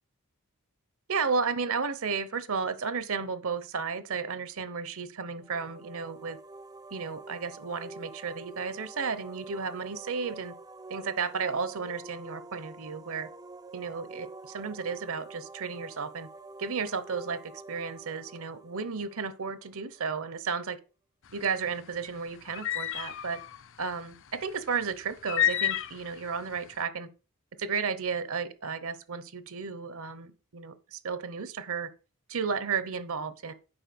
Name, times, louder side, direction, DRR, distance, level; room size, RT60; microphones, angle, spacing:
voice 1, 1.1-6.4 6.9-10.5 10.9-13.3 13.7-16.3 16.6-20.8 21.3-23.4 23.8-27.1 27.6-31.9 32.3-33.5, right 5 dB, 65° right, 0.9 m, -33 dB
sound 1, 5.3-20.0, right 3 dB, 15° right, 0.4 m, -47 dB
sound 2, 21.3-26.7, left 11 dB, 60° left, 0.7 m, -31 dB
8.9 x 5.4 x 6.0 m
head